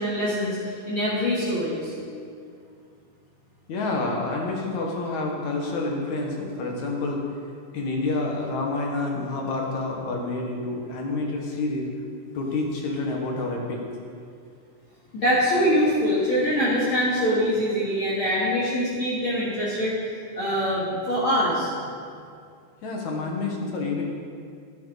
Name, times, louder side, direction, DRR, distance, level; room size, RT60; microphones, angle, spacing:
voice 1, 0.0-1.9 15.1-19.9 20.3-21.7, equal, 40° left, -11 dB, 3.9 m, -24 dB
voice 2, 3.7-7.2 7.7-11.9 12.3-13.8 22.8-24.0, left 3 dB, 65° left, -1 dB, 3.1 m, -28 dB
17.0 x 10.5 x 4.2 m, 2.3 s
omnidirectional pair, 3.7 m